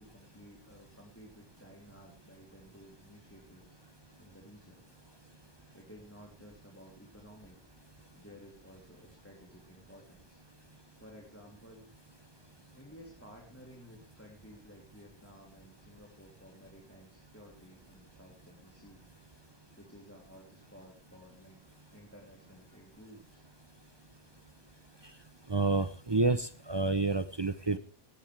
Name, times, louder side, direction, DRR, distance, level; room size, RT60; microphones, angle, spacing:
voice 1, 0.0-3.7 4.2-4.8 5.7-7.7 8.1-10.4 11.0-11.9 12.7-19.1 19.8-21.6 21.9-23.4, equal, 10° left, 0 dB, 2.9 m, -55 dB
voice 2, 25.5-27.8, right 3 dB, 40° right, 13 dB, 0.3 m, -29 dB
18.0 x 16.5 x 3.3 m, 0.34 s
omnidirectional pair, 1.5 m